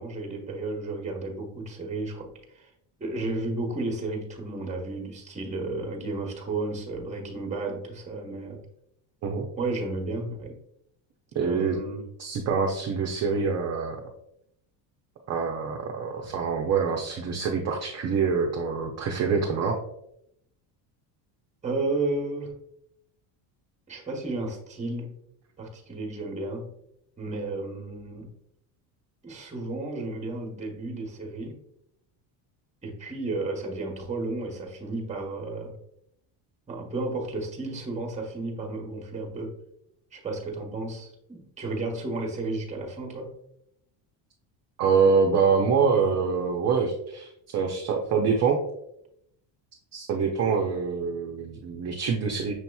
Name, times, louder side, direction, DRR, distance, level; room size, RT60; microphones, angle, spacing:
voice 1, 0.0-2.7 3.0-8.6 9.6-10.6 11.4-12.0 21.6-22.5 23.9-25.2 25.6-26.7 27.2-28.3 29.2-31.6 32.8-35.7 36.7-39.6 40.1-43.4, right 2 dB, 15° right, 1 dB, 0.9 m, -33 dB
voice 2, 11.3-11.8 12.2-14.0 15.3-19.8 44.8-48.6 49.9-52.5, right 5 dB, 35° right, 1 dB, 0.5 m, -25 dB
6.2 x 2.8 x 2.2 m, 0.76 s
cardioid pair, 130°, 48 cm